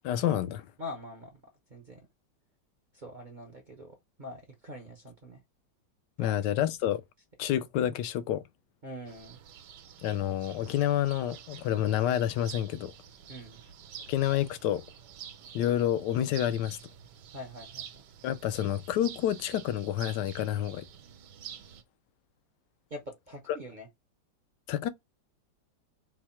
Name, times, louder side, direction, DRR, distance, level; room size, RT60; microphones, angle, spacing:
voice 1, 0.0-0.7 6.2-7.0 7.4-8.4 10.0-12.9 14.1-14.8 15.5-16.8 18.2-20.8 24.7-24.9, left 11 dB, 75° left, 1.1 m, -28 dB
voice 2, 0.8-1.4 1.7-2.1 2.9-5.4 6.2-6.3 8.8-9.4 13.3-13.6 17.3-18.0 22.9-23.9, left 1 dB, 50° right, 0.6 m, -44 dB
sound 1, 9.1-21.8, right 9 dB, 70° right, 1.3 m, -48 dB
4.6 x 2.1 x 4.2 m
omnidirectional pair, 2.0 m